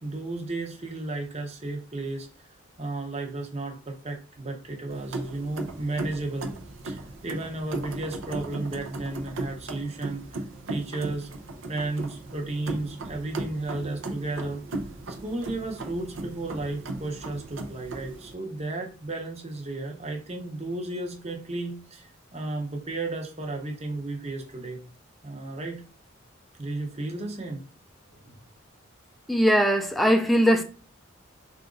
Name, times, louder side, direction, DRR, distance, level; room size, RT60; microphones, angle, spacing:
voice 1, 0.0-2.3 2.8-6.5 6.8-11.3 11.7-14.6 15.1-24.8 25.2-25.8 26.6-27.6 28.1-28.3, right 2 dB, 35° right, 0.8 m, -33 dB
sound 1, 4.9-18.3, right 2 dB, 80° right, 0.6 m, -37 dB
voice 2, 29.3-30.6, equal, ahead, 0.4 m, -20 dB
3.9 x 2.5 x 3.8 m
head